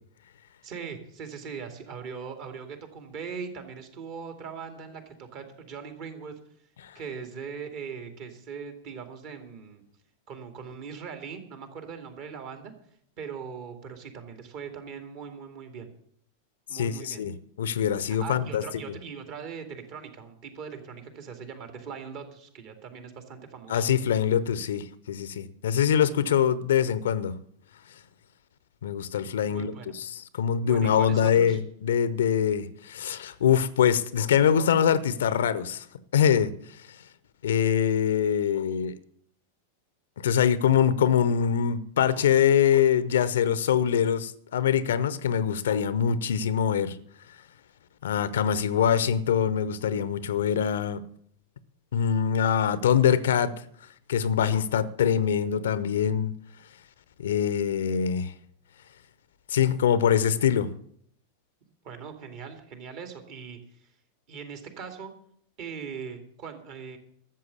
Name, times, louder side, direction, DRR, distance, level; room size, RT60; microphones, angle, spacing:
voice 1, 0.6-6.4 6.9-9.8 10.3-12.7 13.2-15.9 16.7-17.2 18.1-23.8 29.4-29.9 30.6-31.6 61.8-63.9 64.3-65.1 65.6-67.0, right 6 dB, 45° right, 2.4 m, -40 dB
voice 2, 16.7-17.3 17.6-18.6 23.7-27.4 28.8-35.9 36.1-36.5 37.4-38.9 40.2-47.0 48.0-51.0 51.9-53.5 54.1-56.3 57.2-58.3 59.5-60.7, left 8 dB, 60° left, 0.7 m, -24 dB
13.0 x 7.6 x 8.2 m
figure-of-eight pair, 90°, 0 cm